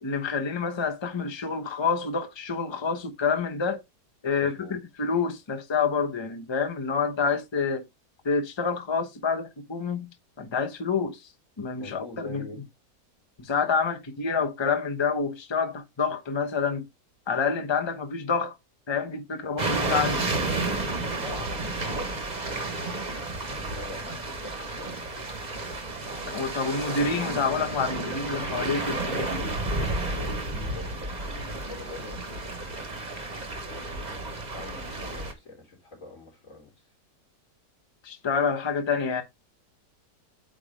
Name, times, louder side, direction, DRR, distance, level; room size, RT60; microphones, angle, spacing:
voice 1, 0.0-3.8 4.2-7.8 8.2-10.1 10.4-11.2 11.6-12.4 13.4-16.8 17.3-18.5 18.9-20.3 26.3-29.4 38.0-39.2, left 5 dB, 20° left, 0.8 m, -28 dB
voice 2, 4.4-4.8 11.8-12.6 19.4-19.5 21.1-22.1 22.5-25.1 28.9-29.1 29.3-29.6 30.1-32.9 33.6-36.7, left 2 dB, 50° left, 3.6 m, -44 dB
sound 1, 19.6-35.3, right 2 dB, 30° right, 1.2 m, -31 dB
8.8 x 3.0 x 5.1 m
omnidirectional pair, 1.8 m